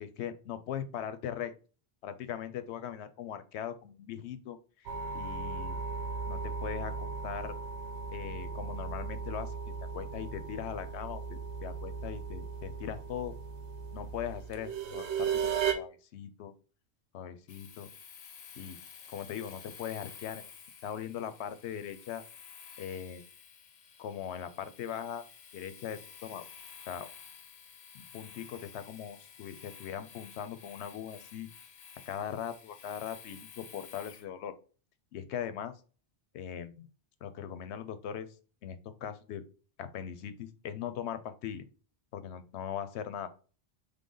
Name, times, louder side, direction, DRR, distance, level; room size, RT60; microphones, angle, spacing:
voice 1, 0.0-1.5 2.0-5.8 6.3-7.5 8.1-9.6 9.9-13.4 13.9-16.5 17.1-17.9 18.6-18.8 19.1-20.5 20.8-22.2 22.8-23.2 24.0-25.3 25.5-26.5 26.9-27.1 27.9-31.8 32.1-34.5 35.1-35.8 36.3-36.9 37.2-38.3 38.6-39.4 39.8-41.6 42.1-43.3, left 9 dB, 85° left, 12 dB, 0.9 m, -40 dB
sound 1, 4.9-15.7, right 6 dB, 85° right, 1.0 m, -36 dB
Domestic sounds home sounds, 17.5-34.3, left 7 dB, 55° left, 0.6 m, -52 dB
3.8 x 3.4 x 3.8 m, 0.37 s
omnidirectional pair, 1.1 m